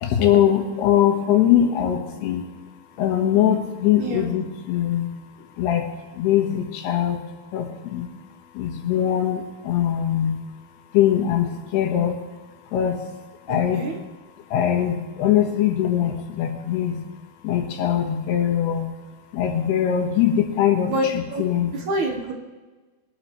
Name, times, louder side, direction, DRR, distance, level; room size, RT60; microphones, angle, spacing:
voice 1, 0.0-2.4 3.0-5.1 5.6-7.2 7.5-8.1 8.6-10.4 10.9-12.2 12.7-13.0 13.5-13.9 14.5-17.0 17.4-18.9 19.3-21.7, left 10 dB, 85° left, 3 dB, 3.4 m, -21 dB
voice 2, 4.0-4.3 13.5-14.0 20.9-21.4 21.7-22.3, right 1 dB, 60° right, 2 dB, 2.2 m, -27 dB
23.0 x 12.0 x 3.2 m, 1.3 s
omnidirectional pair, 4.6 m